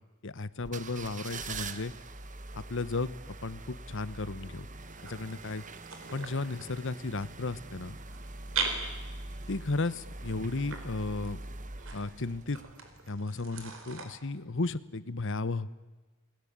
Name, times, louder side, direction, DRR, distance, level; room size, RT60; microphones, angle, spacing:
voice 1, 0.2-1.9 2.5-3.2 3.4-4.7 5.0-5.6 6.1-8.0 9.5-11.4 11.9-12.6 13.1-15.7, left 3 dB, 65° left, 16 dB, 1.1 m, -34 dB
sound 1, 0.6-13.1 13.5-13.6, right 3 dB, 40° right, 1.3 m, -44 dB
sound 2, 4.8-14.1, right 5 dB, 70° right, 4.5 m, -41 dB
29.0 x 20.5 x 8.9 m, 1.2 s
head